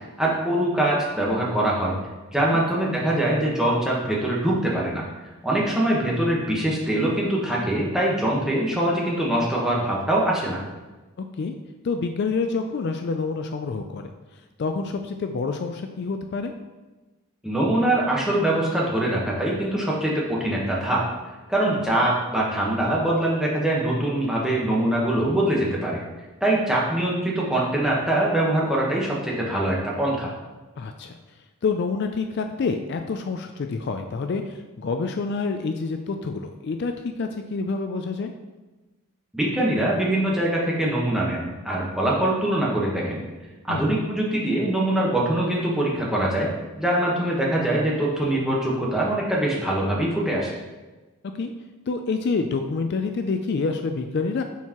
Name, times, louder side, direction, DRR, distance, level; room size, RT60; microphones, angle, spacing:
voice 1, 0.2-1.9 2.3-5.0 5.4-10.6 17.4-21.0 21.5-26.0 26.4-30.3 39.3-43.2 43.7-46.5 46.8-50.5, right 1 dB, ahead, -5 dB, 1.1 m, -23 dB
voice 2, 11.8-14.1 14.6-16.5 21.7-21.8 30.8-31.2 31.6-38.3 43.7-43.9 51.3-51.5 51.9-54.4, left 4 dB, 50° left, 6 dB, 0.3 m, -27 dB
9.2 x 4.5 x 3.0 m, 1.2 s
head